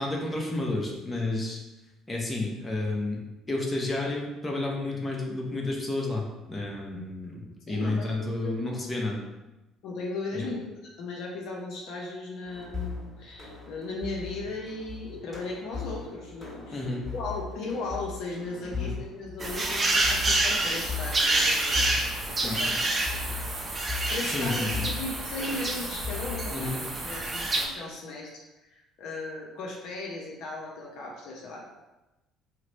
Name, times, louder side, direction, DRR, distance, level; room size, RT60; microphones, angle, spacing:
voice 1, 0.0-1.6 2.1-3.2 3.5-9.2 10.3-10.5 16.7-17.1 18.6-18.9 22.4-22.8 24.3-24.9 26.5-26.9, left 2 dB, 20° left, -1 dB, 0.8 m, -31 dB
voice 2, 7.7-9.0 9.8-10.7 11.0-22.9 23.3-23.4 23.8-31.6, left 3 dB, 65° left, -2 dB, 0.6 m, -37 dB
sound 1, 12.4-26.5, left 5 dB, 5° left, 1.4 m, -39 dB
sound 2, 19.4-27.6, right 2 dB, 30° right, 0.6 m, -28 dB
2.9 x 2.1 x 3.9 m, 1.0 s
hypercardioid pair, 60°, 0 cm